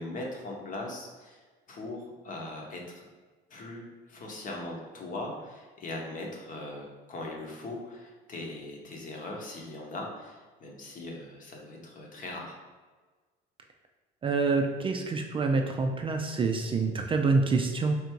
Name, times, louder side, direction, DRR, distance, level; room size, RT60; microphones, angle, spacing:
voice 1, 0.0-1.4 1.7-3.0 3.5-12.6, left 2 dB, 45° left, 0 dB, 1.0 m, -40 dB
voice 2, 14.2-18.0, right 4 dB, 30° right, 3 dB, 0.4 m, -26 dB
3.4 x 2.6 x 4.5 m, 1.3 s
supercardioid pair, 100°, 19 cm